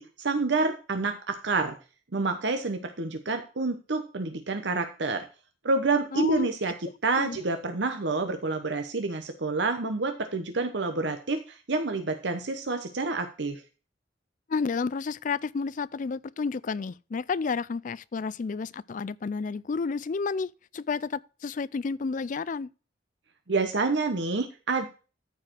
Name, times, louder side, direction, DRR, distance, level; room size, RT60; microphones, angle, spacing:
voice 1, 0.0-1.8 2.1-5.3 5.6-6.7 7.0-13.6 23.5-24.9, right 3 dB, 65° right, 0.9 m, -28 dB
voice 2, 6.1-6.5 7.2-7.4 14.5-22.7, left 4 dB, 45° left, 0.4 m, -31 dB
13.5 x 4.8 x 4.5 m
head